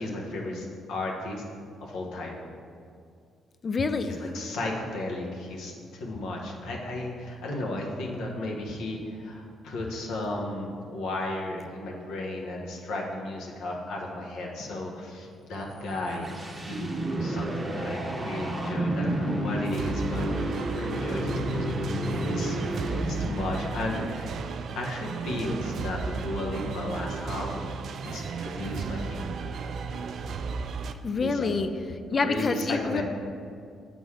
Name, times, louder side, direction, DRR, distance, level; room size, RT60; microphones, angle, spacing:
voice 1, 0.0-1.4 1.8-2.4 4.3-16.3 16.7-21.7 22.3-24.4 24.7-27.8 28.0-29.3 31.2-31.5 32.1-33.0, left 2 dB, 85° left, -1 dB, 1.1 m, -34 dB
voice 2, 3.6-4.2 31.0-31.7 32.1-33.0, left 4 dB, 40° left, 9 dB, 0.4 m, -27 dB
sound 1, 15.7-23.5, right 1 dB, 20° right, 0.9 m, -30 dB
sound 2, 19.7-30.9, right 5 dB, 65° right, 0.3 m, -34 dB
7.2 x 3.9 x 4.8 m, 2.3 s
cardioid pair, 90°, 0 cm